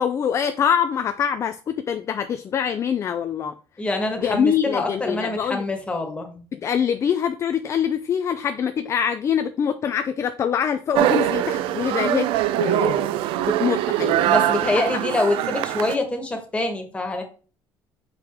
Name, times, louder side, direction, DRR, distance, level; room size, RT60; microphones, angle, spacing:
voice 1, 0.0-3.5 4.2-5.6 6.5-12.3 12.5-14.3 14.7-14.9, left 8 dB, 35° left, 9 dB, 0.4 m, -24 dB
voice 2, 3.8-6.4 14.3-17.2, left 2 dB, 15° left, 3 dB, 1.3 m, -25 dB
sound 1, 11.0-16.0, right 13 dB, 80° right, 0.4 m, -22 dB
6.3 x 4.9 x 3.5 m, 0.38 s
cardioid pair, 150°, 9 cm